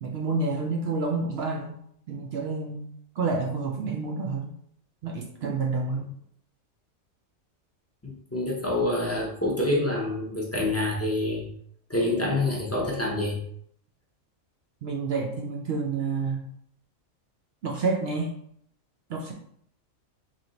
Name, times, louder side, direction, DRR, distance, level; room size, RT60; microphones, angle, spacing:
voice 1, 0.0-1.8 2.1-2.9 3.2-4.5 5.0-6.1 14.8-16.5 17.6-18.3 19.1-19.3, right 4 dB, 60° right, 1 dB, 0.7 m, -29 dB
voice 2, 8.0-11.5 11.9-13.4, left 1 dB, 15° left, -3 dB, 0.5 m, -27 dB
3.4 x 2.7 x 3.9 m, 0.67 s
omnidirectional pair, 1.4 m